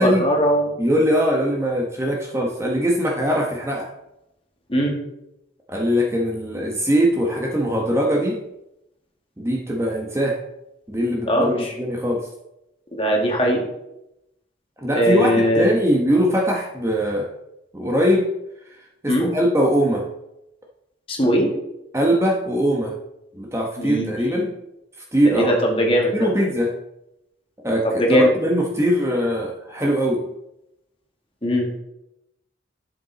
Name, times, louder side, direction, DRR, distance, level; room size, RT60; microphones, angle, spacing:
voice 1, 0.0-0.7 4.7-4.9 11.3-11.7 13.0-13.7 14.9-15.7 19.1-19.3 21.1-21.5 23.8-24.0 24.3-24.4 25.3-26.2 27.8-28.3 31.4-31.8, equal, 30° left, 0 dB, 2.2 m, -19 dB
voice 2, 0.8-3.9 5.7-8.4 9.4-10.4 10.9-12.3 14.8-17.3 17.7-18.3 19.0-20.0 21.9-22.9 23.3-24.5 25.1-25.6 26.1-26.7 27.6-30.3, equal, 15° right, 0 dB, 1.1 m, -21 dB
11.5 x 6.9 x 4.1 m, 0.86 s
head